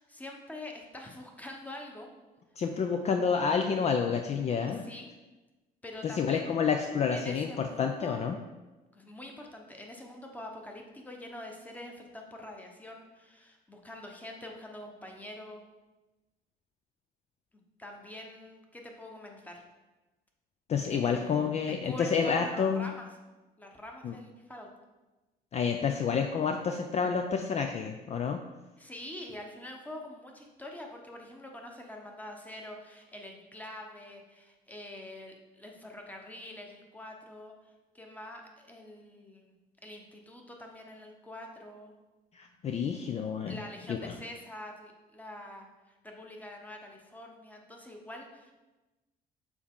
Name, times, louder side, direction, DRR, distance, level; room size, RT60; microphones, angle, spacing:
voice 1, 0.0-2.1 4.7-5.1 5.8-6.5 7.1-8.2 8.9-15.6 17.8-19.7 20.9-21.5 21.8-23.1 23.6-24.7 28.8-37.5 37.9-39.5 39.8-42.0 43.5-48.5, left 1 dB, 10° left, 1 dB, 1.0 m, -45 dB
voice 2, 2.6-4.9 6.0-8.4 20.7-22.9 24.0-24.2 25.5-28.4 42.3-43.6 43.9-44.1, left 6 dB, 40° left, 5 dB, 0.4 m, -29 dB
7.1 x 4.2 x 3.7 m, 1.1 s
cardioid pair, 110°, 17 cm